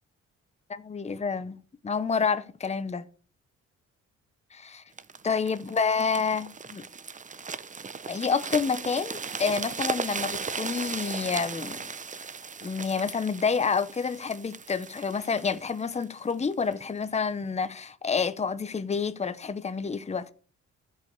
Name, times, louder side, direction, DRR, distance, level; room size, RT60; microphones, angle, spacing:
voice 1, 0.7-1.6 1.8-3.0 4.5-4.8 5.2-6.8 8.1-11.9 12.6-20.3, left 5 dB, 20° left, 0.9 m, -28 dB
sound 1, 5.0-16.8 17.4-17.6, right 5 dB, 25° right, 0.7 m, -37 dB
12.5 x 5.3 x 6.6 m
cardioid pair, 90°, 30 cm